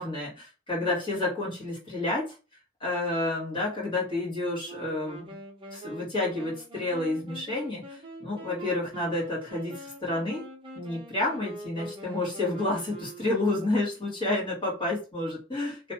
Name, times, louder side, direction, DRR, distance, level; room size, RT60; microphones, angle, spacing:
voice 1, 0.0-2.3 2.8-5.4 5.7-10.4 10.8-15.9, left 2 dB, 25° left, -6 dB, 2.1 m, -30 dB
Wind instrument woodwind instrument, 4.6-13.7, right 2 dB, 25° right, 0.9 m, -44 dB
3.2 x 3.2 x 2.8 m, 0.33 s
head